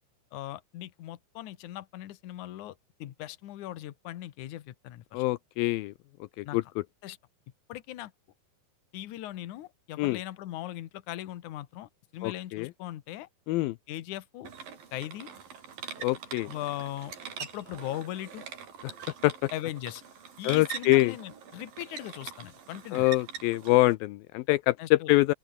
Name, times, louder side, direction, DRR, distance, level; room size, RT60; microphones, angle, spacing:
voice 1, 0.3-5.2 6.4-6.7 7.0-7.2 7.7-8.1 8.9-13.3 13.9-14.5 14.9-15.3 16.5-17.1 17.4-18.4 19.5-20.0 20.4-23.1 24.8-25.1, left 14 dB, 65° left, 2.1 m, -39 dB
voice 2, 5.1-5.9 6.4-6.6 10.0-10.2 12.2-12.7 13.5-13.8 16.0-16.5 18.8-18.9 19.2-19.5 20.4-21.1 22.9-25.3, left 19 dB, 85° left, 2.1 m, -25 dB
sound 1, 14.4-23.9, right 7 dB, 55° right, 5.3 m, -43 dB
open air
omnidirectional pair, 4.9 m